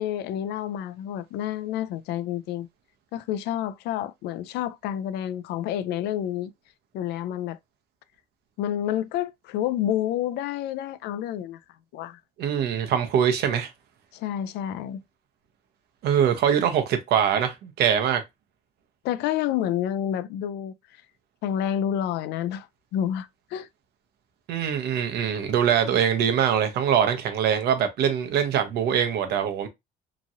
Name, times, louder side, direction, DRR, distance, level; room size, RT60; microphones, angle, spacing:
voice 1, 0.0-2.7 3.1-6.5 6.9-7.6 8.6-11.6 11.9-12.2 14.1-15.0 19.0-20.7 21.4-22.7 22.9-23.7, left 11 dB, 80° left, 0.4 m, -29 dB
voice 2, 12.4-13.7 16.0-18.2 24.5-29.7, right 8 dB, 75° right, 0.7 m, -23 dB
2.9 x 2.5 x 2.7 m
cardioid pair, 110°, 17 cm